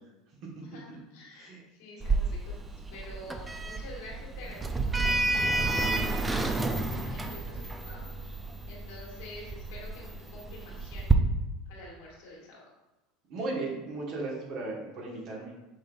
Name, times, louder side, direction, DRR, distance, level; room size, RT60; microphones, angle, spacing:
voice 1, 0.6-8.1 8.7-11.2 11.6-12.6, left 1 dB, 70° left, -3 dB, 1.5 m, -48 dB
Sliding door, 2.0-11.1, right 3 dB, 15° right, 0.4 m, -30 dB
voice 2, 13.3-15.5, right 2 dB, 50° right, -3 dB, 1.5 m, -36 dB
5.3 x 3.7 x 2.5 m, 0.98 s
hypercardioid pair, 80°, 0 cm